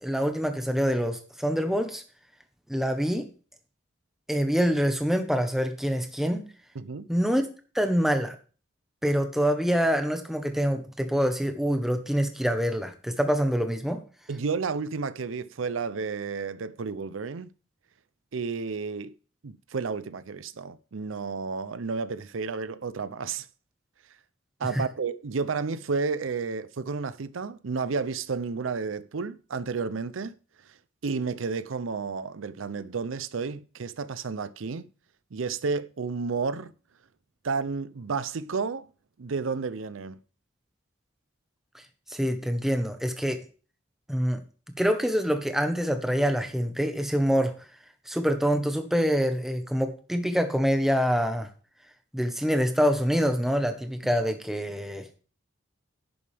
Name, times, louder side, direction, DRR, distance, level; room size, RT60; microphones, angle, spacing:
voice 1, 0.0-2.0 2.7-3.3 4.3-6.4 7.1-7.4 7.7-8.3 9.0-14.0 24.7-24.8 42.1-43.4 44.1-44.4 44.8-47.7 48.1-51.5 52.1-55.2, equal, ahead, 1.1 m, -25 dB
voice 2, 6.7-7.1 14.3-17.5 18.3-19.1 19.4-23.5 24.6-30.3 31.0-34.9 35.3-36.7 37.4-38.9 39.2-40.2, right 4 dB, 90° right, 0.6 m, -31 dB
11.0 x 8.5 x 3.5 m
head